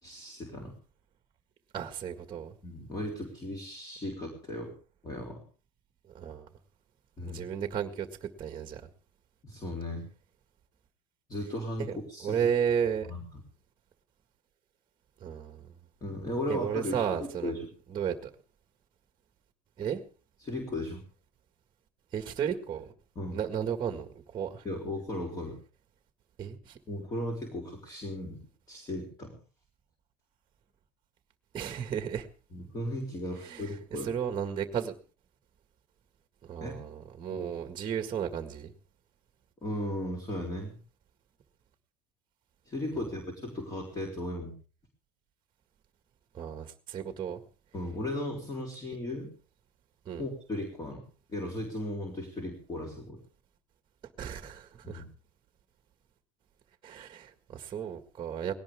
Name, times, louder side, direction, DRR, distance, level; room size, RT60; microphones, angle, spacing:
voice 1, 0.0-0.7 2.6-4.7 5.0-5.4 7.2-7.5 9.4-10.1 11.3-12.5 13.1-13.2 16.0-17.0 17.4-17.7 20.4-21.0 23.2-23.4 24.6-25.6 26.9-28.4 28.7-29.4 32.5-34.1 36.6-36.7 37.3-37.5 39.6-40.8 42.7-44.5 47.7-49.3 50.2-51.0 51.3-53.2 54.8-55.1, left 1 dB, 20° left, 1 dB, 3.8 m, -36 dB
voice 2, 1.7-2.6 6.1-6.5 7.2-8.8 11.8-11.9 12.2-13.1 15.2-15.7 16.5-17.5 17.9-18.3 19.8-20.0 22.1-22.9 23.3-24.6 26.4-26.8 31.5-32.3 33.4-35.0 36.4-38.7 46.3-47.4 50.1-50.2 54.2-55.0 56.8-58.5, right 8 dB, 25° right, 7 dB, 1.8 m, -33 dB
19.5 x 17.5 x 3.6 m, 0.39 s
cardioid pair, 155°, 19 cm